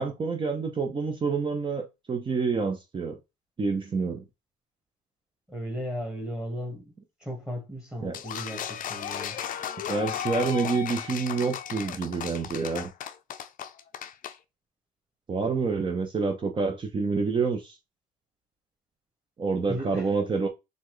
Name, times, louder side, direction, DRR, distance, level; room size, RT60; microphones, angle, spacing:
voice 1, 0.0-3.2 3.6-4.2 8.0-8.2 9.9-12.9 15.3-17.8 19.4-20.5, right 4 dB, 30° right, 0.8 m, -28 dB
voice 2, 5.5-6.9 7.2-9.4 19.7-20.1, equal, 5° right, 1.6 m, -36 dB
sound 1, 8.1-14.4, left 9 dB, 55° left, 0.5 m, -35 dB
4.2 x 3.4 x 3.2 m
cardioid pair, 110°, 17 cm